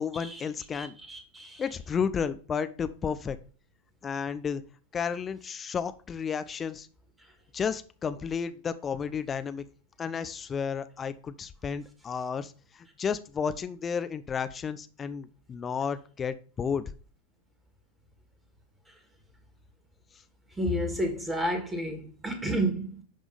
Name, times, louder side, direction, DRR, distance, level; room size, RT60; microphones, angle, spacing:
voice 1, 0.0-0.9 1.6-3.4 4.0-4.6 4.9-6.9 7.5-9.6 10.0-16.8, left 6 dB, 20° left, 0.5 m, -32 dB
voice 2, 0.7-1.7 18.9-19.0 20.5-23.0, right 1 dB, 10° right, 2.2 m, -31 dB
10.5 x 3.6 x 5.1 m
figure-of-eight pair, 90°, 0 cm